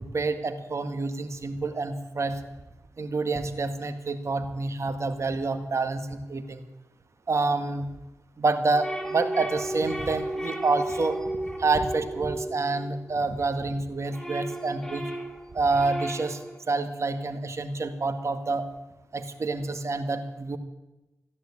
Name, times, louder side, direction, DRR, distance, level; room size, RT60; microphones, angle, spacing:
voice 1, 0.0-2.4 3.0-6.6 7.3-7.9 8.4-11.2 11.6-15.1 15.5-16.4 16.7-18.6 19.1-20.6, right 3 dB, 50° right, 8 dB, 1.9 m, -28 dB
sound 1, 8.7-13.4 13.8-16.6, right 1 dB, 5° left, 2.6 m, -34 dB
14.5 x 11.0 x 8.5 m, 1.0 s
cardioid pair, 55°, 6 cm